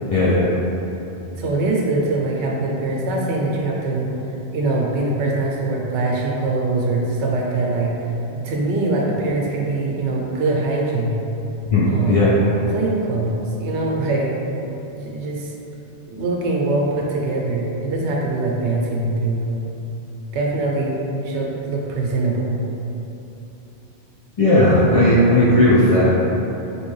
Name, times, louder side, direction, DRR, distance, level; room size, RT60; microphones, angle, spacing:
voice 1, 0.1-0.5 11.7-12.3 24.4-26.1, left 1 dB, 60° left, -9 dB, 0.3 m, -15 dB
voice 2, 1.3-4.1 4.5-7.9 8.3-11.2 11.8-12.3 12.7-14.3 14.9-15.5 16.1-19.7 20.3-21.0 21.2-22.5, right 2 dB, 85° right, -2 dB, 0.9 m, -23 dB
3.1 x 2.9 x 3.1 m, 2.9 s
omnidirectional pair, 1.1 m